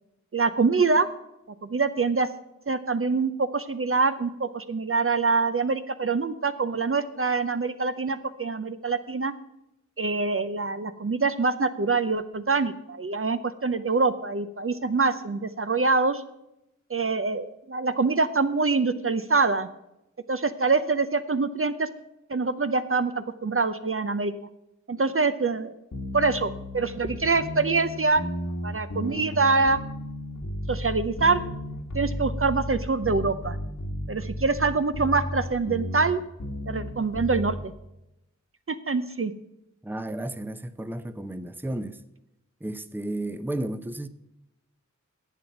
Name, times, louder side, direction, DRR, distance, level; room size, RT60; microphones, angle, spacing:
voice 1, 0.3-1.1 1.6-2.3 2.7-9.3 10.0-16.2 16.9-19.7 20.3-21.9 22.3-24.5 24.9-25.7 26.1-28.2 28.6-29.8 30.7-31.4 31.9-33.6 34.1-36.2 36.7-37.6 38.7-39.3, right 4 dB, 45° right, 0.6 m, -25 dB
sound 1, 25.9-37.7, left 1 dB, 80° left, 1.7 m, -34 dB
voice 2, 39.8-42.0 42.6-44.1, right 1 dB, 5° right, 0.6 m, -33 dB
11.0 x 7.9 x 5.7 m
wide cardioid pair, 55°, 30 cm